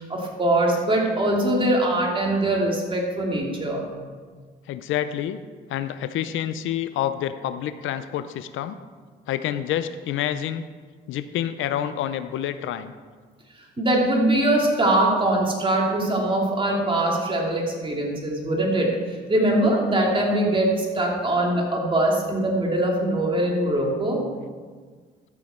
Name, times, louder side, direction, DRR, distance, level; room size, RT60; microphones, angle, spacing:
voice 1, 0.0-3.9 13.8-24.2, right 1 dB, 25° right, -2 dB, 2.8 m, -22 dB
voice 2, 4.7-5.4 5.7-8.8 9.3-10.6 11.1-12.9, left 11 dB, 80° left, 12 dB, 0.6 m, -28 dB
13.5 x 7.3 x 4.4 m, 1.5 s
cardioid pair, 90°, 20 cm